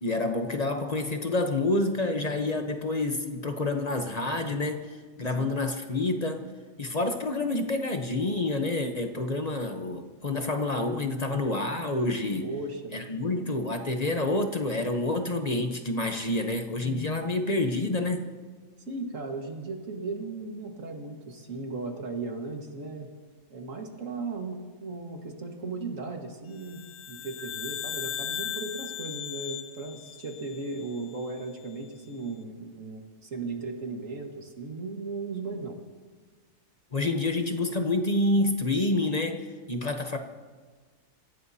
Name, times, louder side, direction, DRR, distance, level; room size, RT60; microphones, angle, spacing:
voice 1, 0.0-6.5 6.8-12.5 12.9-18.2 36.9-40.2, left 2 dB, 30° left, 5 dB, 0.9 m, -28 dB
voice 2, 12.4-13.1 18.9-23.1 23.5-35.8, right 3 dB, 50° right, 2 dB, 2.1 m, -36 dB
sound 1, 26.6-31.1, left 10 dB, 75° left, 1.3 m, -37 dB
28.5 x 16.0 x 2.8 m, 1.5 s
omnidirectional pair, 1.7 m